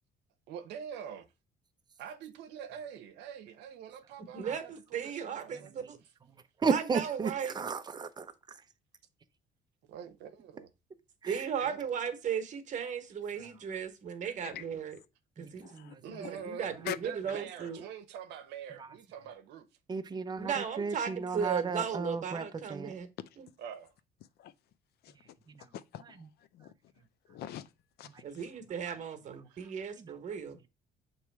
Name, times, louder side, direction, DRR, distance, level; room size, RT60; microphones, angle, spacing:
voice 1, 0.5-1.2 2.0-5.9 9.9-10.7 11.6-11.8 16.0-19.7 23.6-23.9 29.5-29.7, right 8 dB, 85° right, 0.8 m, -45 dB
voice 2, 4.3-6.0 6.7-7.5 11.3-15.0 15.4-15.7 16.0-17.8 20.4-23.1 23.4-23.5 28.2-30.7, right 7 dB, 45° right, 1.2 m, -36 dB
voice 3, 6.6-8.6 11.2-11.5 15.4-16.2 18.8-18.9 19.9-22.4 22.7-22.9 25.5-25.7 28.1-28.2 30.0-30.1, right 5 dB, 25° right, 0.7 m, -35 dB
voice 4, 15.6-16.0 16.2-16.5 16.8-17.0 17.3-17.7 24.4-24.5 25.0-26.7 27.3-27.7 28.0-28.4, left 11 dB, 70° left, 0.6 m, -44 dB
7.0 x 3.1 x 4.6 m
cardioid pair, 110°, 17 cm